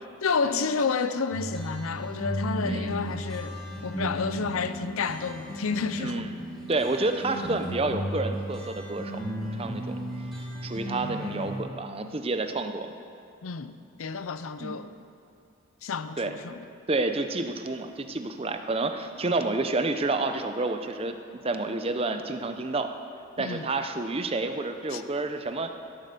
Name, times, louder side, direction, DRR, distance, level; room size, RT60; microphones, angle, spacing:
voice 1, 0.2-6.3 13.4-13.7 14.0-14.9 15.8-16.7 23.4-23.7 24.9-25.0, left 5 dB, 85° left, 0.6 m, -30 dB
sound 1, 1.3-11.6, equal, ahead, 2.5 m, -35 dB
voice 2, 2.6-2.9 6.0-6.3 6.7-9.3 9.5-10.0 10.6-12.9 14.6-14.8 16.2-16.4 16.9-21.2 21.4-22.9 23.4-25.7, right 2 dB, 25° right, 0.6 m, -29 dB
17.0 x 7.8 x 6.8 m
head